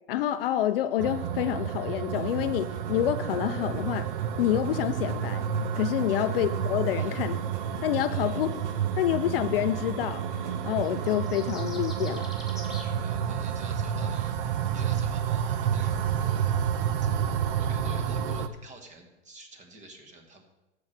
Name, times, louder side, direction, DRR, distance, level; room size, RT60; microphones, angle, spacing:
voice 1, 0.1-4.1 4.4-5.4 5.7-7.4 7.8-8.6 9.0-10.2 10.6-12.3, left 12 dB, 50° left, 11 dB, 0.6 m, -27 dB
sound 1, 1.0-18.5, right 8 dB, 50° right, 0.7 m, -30 dB
sound 2, 2.1-11.1, right 5 dB, 75° right, 1.7 m, -44 dB
voice 2, 6.9-7.3 8.1-8.7 13.0-16.4 17.3-20.4, right 2 dB, 20° right, 4 dB, 1.7 m, -49 dB
sound 3, 10.8-12.9, left 1 dB, ahead, 2.0 m, -45 dB
13.5 x 4.7 x 6.5 m, 0.99 s
hypercardioid pair, 125°, 36 cm